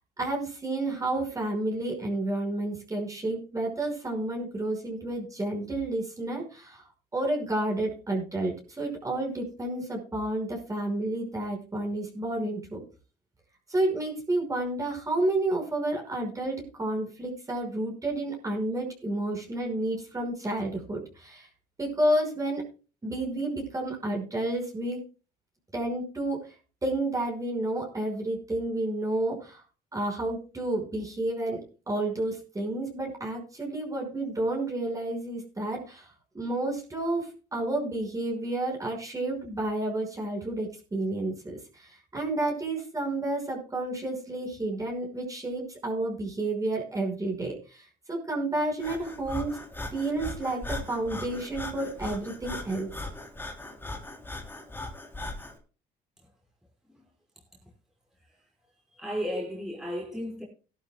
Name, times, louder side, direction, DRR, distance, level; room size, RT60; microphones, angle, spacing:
voice 1, 0.2-6.8 7.1-12.8 13.7-21.5 21.8-22.6 23.0-25.0 25.7-26.4 26.8-29.6 29.9-31.6 31.9-36.1 36.3-47.8 48.1-49.5 49.9-52.9, right 2 dB, 20° right, 5.7 m, -30 dB
Breathing, 48.8-55.6, left 2 dB, 10° left, 3.2 m, -39 dB
voice 2, 58.9-60.4, equal, 5° right, 5.2 m, -34 dB
18.0 x 12.0 x 2.3 m
cardioid pair, 110°, 17 cm